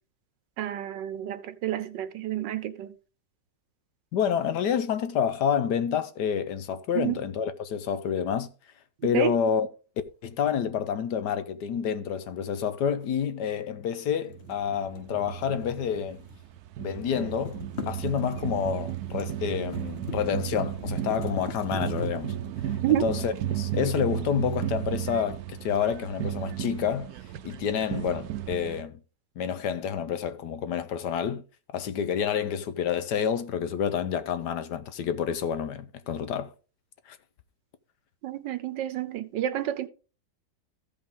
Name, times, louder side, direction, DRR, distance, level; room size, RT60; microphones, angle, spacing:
voice 1, 0.6-2.9 6.9-7.2 9.0-9.3 22.8-23.1 38.2-39.9, right 12 dB, 90° right, 1.5 m, -29 dB
voice 2, 4.1-8.5 9.0-9.7 10.2-16.3 16.8-22.3 22.9-27.1 27.4-29.0 29.4-31.4 31.7-36.5 37.1-37.2, left 8 dB, 75° left, 1.4 m, -28 dB
sound 1, 14.3-16.6 16.8-24.1, left 6 dB, 45° left, 1.0 m, -43 dB
sound 2, 14.3-28.8, right 12 dB, 70° right, 1.0 m, -34 dB
15.0 x 5.2 x 3.5 m
omnidirectional pair, 1.9 m